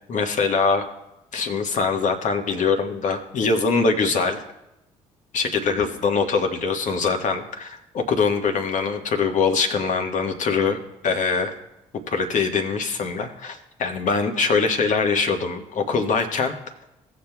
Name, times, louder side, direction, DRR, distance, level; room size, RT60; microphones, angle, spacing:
voice 1, 0.1-0.8 1.3-4.4 5.3-11.5 12.1-16.5, left 4 dB, 45° left, 4 dB, 1.4 m, -23 dB
18.0 x 7.2 x 2.3 m, 0.91 s
figure-of-eight pair, 45°, 17 cm